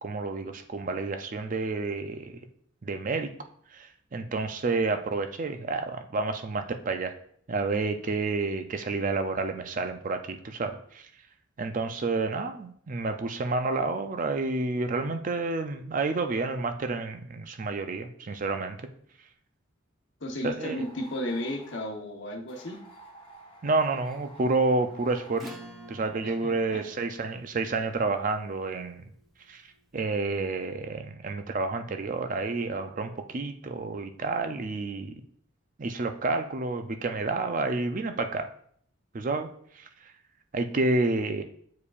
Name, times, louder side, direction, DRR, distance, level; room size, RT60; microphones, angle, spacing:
voice 1, 0.0-2.4 2.8-3.3 3.7-7.1 7.5-11.0 11.6-18.8 20.4-20.9 23.6-25.6 25.9-29.0 29.5-29.6 29.9-35.1 35.8-38.5 39.1-39.5 39.8-39.9 40.5-41.4, right 3 dB, 40° right, 7 dB, 0.4 m, -29 dB
voice 2, 20.2-22.8 26.2-26.8, left 1 dB, 60° left, 2 dB, 1.0 m, -34 dB
sound 1, 20.6-21.9 22.5-25.6, right 2 dB, 25° left, 1.1 m, -51 dB
Acoustic guitar / Strum, 25.3-30.3, right 1 dB, ahead, 0.8 m, -50 dB
8.3 x 4.7 x 2.4 m, 0.62 s
head